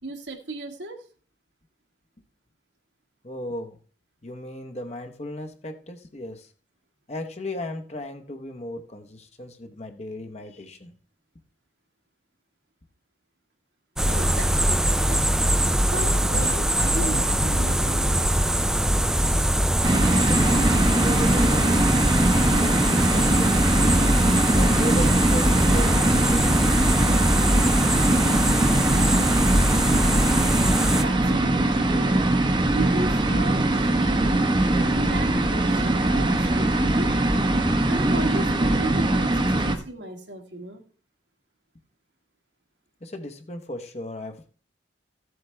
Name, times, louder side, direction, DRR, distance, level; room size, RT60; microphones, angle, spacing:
voice 1, 0.0-1.0 14.0-15.2 15.9-18.4 30.9-32.2 32.7-34.0 34.7-37.1 37.9-40.8, right 2 dB, 75° right, 3 dB, 1.7 m, -35 dB
voice 2, 3.2-3.8 4.2-6.5 7.1-10.9 19.9-21.7 22.1-24.2 24.5-26.5 43.0-44.5, left 1 dB, 35° left, 5 dB, 0.9 m, -36 dB
sound 1, 14.0-31.0, right 1 dB, 5° right, 0.4 m, -22 dB
sound 2, 19.8-39.7, right 2 dB, 25° right, 0.8 m, -22 dB
14.5 x 7.8 x 3.3 m, 0.42 s
head